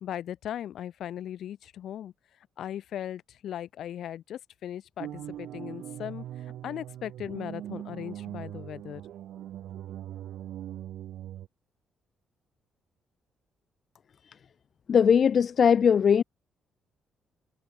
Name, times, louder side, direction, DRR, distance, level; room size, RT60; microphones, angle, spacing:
voice 1, 0.0-2.1 2.6-6.2 6.6-9.0, left 11 dB, 70° left, 1.7 m, -38 dB
sound 1, 5.0-11.5, right 12 dB, 80° right, 1.8 m, -40 dB
voice 2, 14.9-16.2, left 7 dB, 50° left, 0.4 m, -20 dB
cardioid pair, 90°, 0 cm